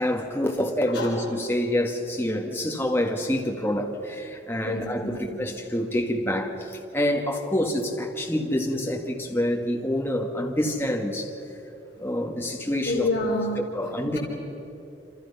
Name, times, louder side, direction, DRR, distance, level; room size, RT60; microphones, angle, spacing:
voice 1, 0.0-11.3 12.0-13.1 13.6-14.2, left 1 dB, 10° left, 0 dB, 2.2 m, -27 dB
voice 2, 4.6-5.1 12.8-13.6, left 2 dB, 65° left, -2 dB, 4.3 m, -27 dB
27.5 x 27.5 x 5.8 m, 3.0 s
head